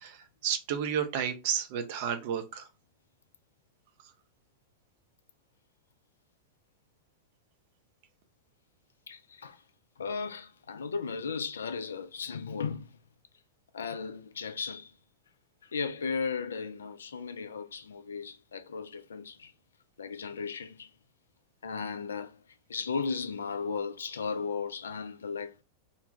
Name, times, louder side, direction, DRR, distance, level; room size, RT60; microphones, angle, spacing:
voice 1, 0.4-2.6, right 8 dB, 50° right, 0.5 m, -31 dB
voice 2, 9.1-9.6 10.0-12.9 13.7-14.9 15.7-19.5 20.0-20.9 21.6-22.4 22.7-25.5, left 5 dB, 70° left, 0.3 m, -35 dB
2.5 x 2.2 x 3.2 m
figure-of-eight pair, 90°, 0 cm